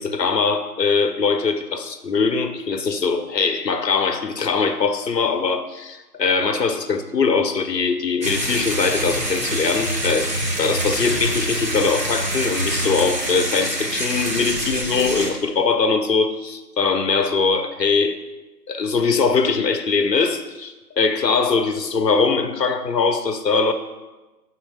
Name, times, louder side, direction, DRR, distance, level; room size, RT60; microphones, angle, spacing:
voice 1, 0.0-10.3 10.6-18.2 18.7-23.7, left 4 dB, 85° left, 7 dB, 0.7 m, -21 dB
sound 1, 8.2-15.3, right 1 dB, 80° right, 1.8 m, -25 dB
4.5 x 4.3 x 5.7 m, 1.1 s
figure-of-eight pair, 160°, 48 cm